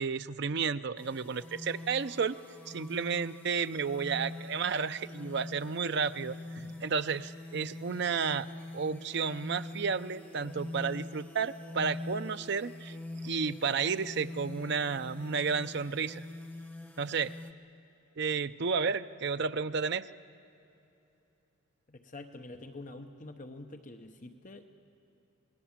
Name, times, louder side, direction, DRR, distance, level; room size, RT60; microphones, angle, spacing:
voice 1, 0.0-2.4 2.7-8.5 8.7-12.9 13.2-16.3 17.0-17.3 18.2-20.1, right 5 dB, 55° right, 11 dB, 0.5 m, -32 dB
sound 1, 1.0-17.5, left 2 dB, 10° left, 0.8 m, -44 dB
voice 2, 21.9-24.7, left 2 dB, 40° left, 6 dB, 0.9 m, -46 dB
27.5 x 19.5 x 7.3 m, 2.9 s
head